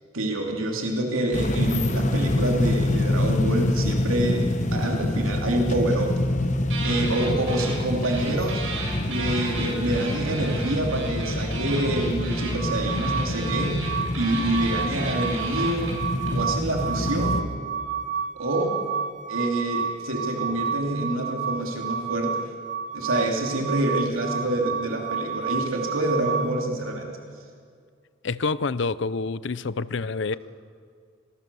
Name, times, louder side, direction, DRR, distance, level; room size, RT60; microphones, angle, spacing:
voice 1, 0.1-6.1 6.8-8.7 9.1-13.8 14.1-17.5 18.3-18.8 19.3-22.5 22.9-27.1, right 1 dB, 85° right, 1 dB, 2.9 m, -27 dB
sound 1, 1.3-17.4, left 1 dB, 35° left, 1.0 m, -26 dB
sound 2, 6.7-7.8 8.0-16.3, right 3 dB, 70° right, 7.4 m, -35 dB
sound 3, 12.5-26.6, right 7 dB, 35° right, 1.1 m, -31 dB
voice 2, 28.2-30.4, left 4 dB, 60° left, 18 dB, 0.6 m, -27 dB
26.0 x 20.0 x 7.0 m, 2.1 s
head